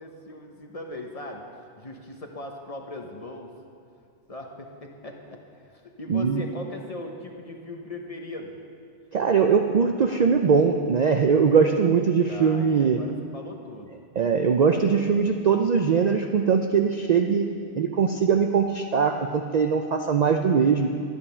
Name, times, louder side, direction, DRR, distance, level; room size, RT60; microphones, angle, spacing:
voice 1, 0.0-1.4 1.8-3.5 4.3-8.6 12.3-13.9, left 2 dB, 35° left, 2 dB, 1.0 m, -39 dB
voice 2, 6.1-6.4 9.1-13.0 14.2-17.5 17.8-20.9, right 6 dB, 55° right, 4 dB, 0.5 m, -21 dB
11.0 x 9.8 x 5.5 m, 2.4 s
omnidirectional pair, 1.1 m